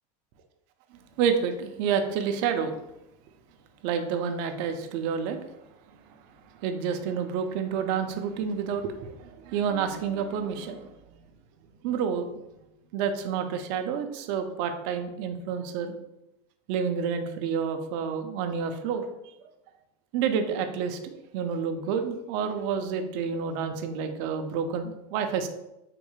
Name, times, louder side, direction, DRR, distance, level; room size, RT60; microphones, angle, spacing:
voice 1, 1.2-2.8 3.8-5.4 6.6-10.9 11.8-12.3 12.9-16.0 16.7-19.0 20.1-25.5, right 7 dB, 50° right, 7 dB, 0.4 m, -29 dB
3.6 x 2.9 x 2.3 m, 0.90 s
supercardioid pair, 135°, 19 cm